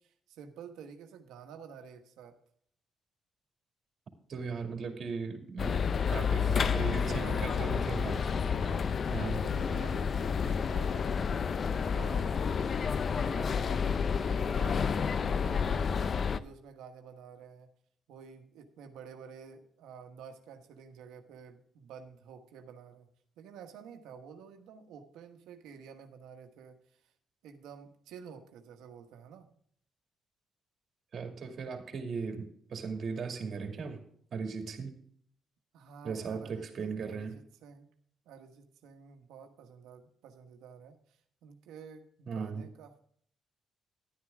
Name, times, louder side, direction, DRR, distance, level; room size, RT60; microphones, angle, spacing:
voice 1, 0.0-2.4 6.5-8.1 8.5-11.4 11.9-12.5 13.0-17.7 18.1-23.1 23.4-27.1 27.4-29.5 35.7-37.9 38.3-43.0, right 7 dB, 90° right, 6 dB, 1.2 m, -50 dB
voice 2, 4.3-5.8 6.1-8.2 9.1-9.4 31.1-34.0 34.3-35.0 36.0-37.3 42.3-42.7, right 5 dB, 55° right, 4 dB, 2.3 m, -37 dB
sound 1, 5.6-16.4, left 6 dB, 45° left, 0.5 m, -30 dB
11.5 x 9.7 x 3.6 m, 0.64 s
cardioid pair, 90°, 0 cm